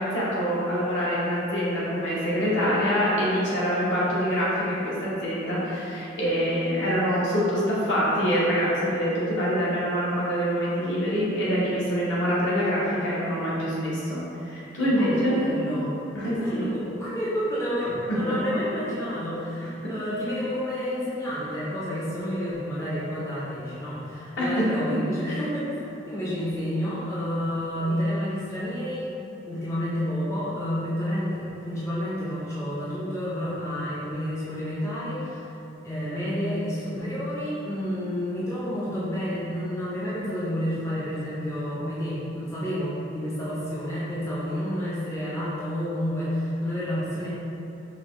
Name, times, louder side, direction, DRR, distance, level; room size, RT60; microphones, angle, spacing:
voice 1, 0.0-15.4 16.1-16.7 18.1-18.4 24.4-24.7, equal, 65° left, -8 dB, 1.1 m, -25 dB
voice 2, 14.9-15.9 16.3-25.8 26.1-29.1 29.5-35.5 35.8-47.3, equal, 15° left, -9 dB, 0.5 m, -30 dB
5.1 x 2.1 x 3.1 m, 2.9 s
head